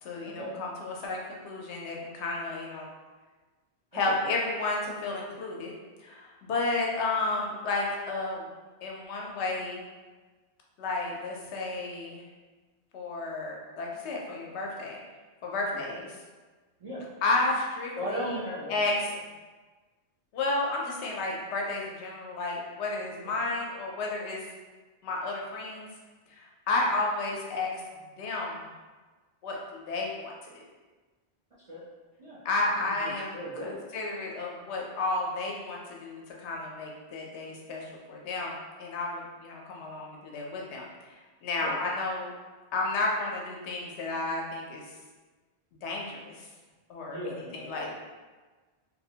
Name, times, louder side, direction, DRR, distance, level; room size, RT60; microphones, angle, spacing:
voice 1, 0.0-2.9 3.9-5.7 6.0-8.5 8.8-9.8 10.8-12.2 12.9-15.0 15.4-16.1 17.2-18.4 18.7-18.9 20.3-24.4 25.0-25.9 26.4-27.8 28.2-28.7 29.4-30.6 32.4-33.4 33.9-40.9 41.4-42.3 42.7-44.8 45.8-46.5 46.9-47.2 47.5-47.9, left 2 dB, 85° left, -2 dB, 0.9 m, -32 dB
voice 2, 3.9-4.4 15.9-16.0 16.8-17.0 18.0-19.2 23.2-23.3 31.7-31.8 32.2-32.4 32.7-33.8 41.6-41.8 47.0-47.9, equal, 45° right, -9 dB, 0.4 m, -38 dB
2.5 x 2.0 x 2.7 m, 1.3 s
omnidirectional pair, 1.1 m